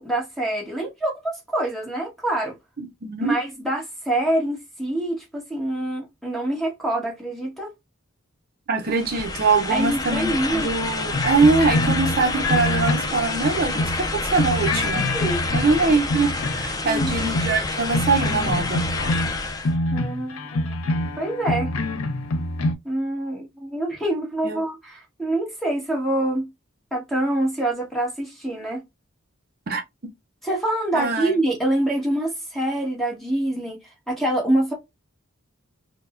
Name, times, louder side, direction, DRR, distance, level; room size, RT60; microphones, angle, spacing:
voice 1, 0.0-2.6 3.2-7.7 9.7-10.7 15.1-15.4 16.8-17.1 19.9-20.6 21.2-21.7 22.8-26.5 26.9-28.8 30.4-34.7, right 1 dB, ahead, 1.1 m, -25 dB
voice 2, 2.8-3.4 8.7-15.1 15.5-18.9 24.4-24.6 29.7-29.8 30.9-31.3, right 4 dB, 45° right, 0.5 m, -23 dB
sound 1, 8.9-19.7, left 3 dB, 15° left, 0.3 m, -28 dB
sound 2, 11.1-14.1 14.4-16.7 17.0-22.7, left 1 dB, 85° left, 0.5 m, -26 dB
4.5 x 2.0 x 2.4 m
head